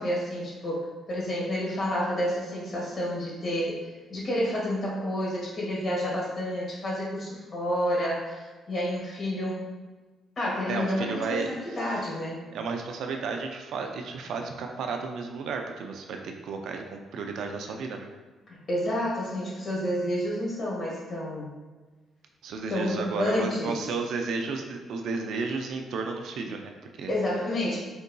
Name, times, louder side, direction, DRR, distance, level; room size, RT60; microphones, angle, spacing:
voice 1, 0.0-3.8 4.1-9.6 10.4-12.4 18.5-21.5 22.7-23.8 27.1-27.8, equal, 45° left, -5 dB, 1.2 m, -29 dB
voice 2, 10.7-12.1 12.5-18.1 22.4-27.1, right 4 dB, 75° right, 3 dB, 0.3 m, -33 dB
3.7 x 2.6 x 2.2 m, 1.3 s
cardioid pair, 90°, 0 cm